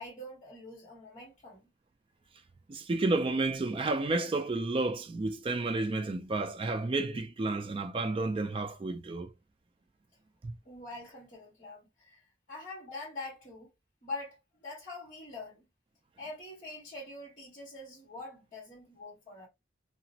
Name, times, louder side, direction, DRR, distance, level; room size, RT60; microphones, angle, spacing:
voice 1, 0.0-1.7 10.6-12.2 12.5-13.7 14.0-15.6 16.2-19.5, left 2 dB, 40° left, 1.6 m, -44 dB
voice 2, 2.7-9.3 10.4-10.5, right 2 dB, 30° right, 0.3 m, -31 dB
2.9 x 2.0 x 2.7 m
head